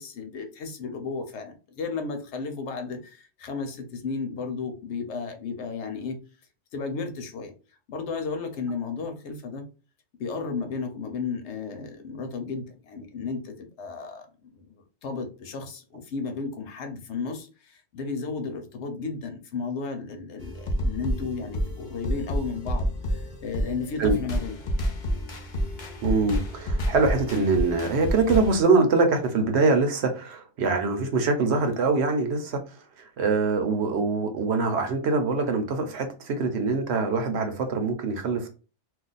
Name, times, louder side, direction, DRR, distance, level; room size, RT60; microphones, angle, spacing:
voice 1, 0.0-6.2 6.7-7.5 7.9-9.6 10.2-24.6, left 4 dB, 75° left, 1.0 m, -34 dB
sound 1, 20.4-28.6, equal, 50° left, 0.7 m, -29 dB
voice 2, 26.0-32.6 33.0-38.5, right 4 dB, 70° right, 0.9 m, -24 dB
2.4 x 2.4 x 3.9 m
omnidirectional pair, 1.2 m